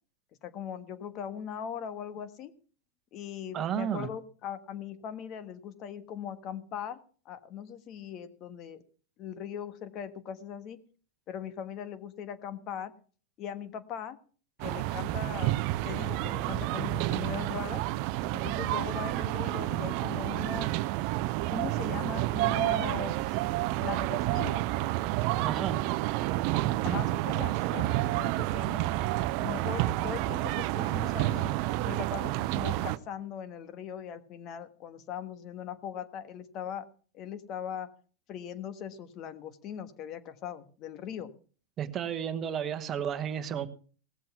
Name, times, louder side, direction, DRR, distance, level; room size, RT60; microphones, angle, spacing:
voice 1, 0.4-2.5 3.1-7.0 7.2-8.8 9.2-10.8 11.3-12.9 13.4-14.2 14.6-15.6 15.8-17.8 18.3-20.7 21.4-23.2 23.8-24.6 26.8-28.9 29.4-31.5 31.8-36.9 37.1-37.9 38.3-41.3, left 8 dB, 40° left, 1.3 m, -40 dB
voice 2, 3.5-4.1 25.4-25.9 41.8-43.7, right 9 dB, 30° right, 1.2 m, -32 dB
sound 1, 14.6-33.0, right 17 dB, 50° right, 0.6 m, -30 dB
18.0 x 7.6 x 5.9 m
hypercardioid pair, 120°, 0 cm